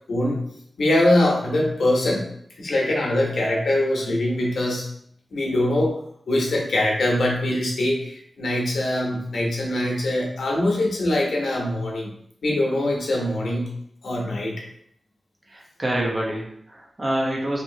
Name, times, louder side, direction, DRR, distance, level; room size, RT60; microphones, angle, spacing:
voice 1, 0.1-0.4 0.8-2.3 2.6-4.8 5.3-5.9 6.3-12.1 12.4-13.7 14.0-14.6, left 1 dB, 80° left, -1 dB, 0.7 m, -23 dB
voice 2, 15.5-17.6, right 1 dB, 30° right, -2 dB, 0.7 m, -27 dB
2.8 x 2.6 x 2.7 m, 0.68 s
wide cardioid pair, 150°, 0 cm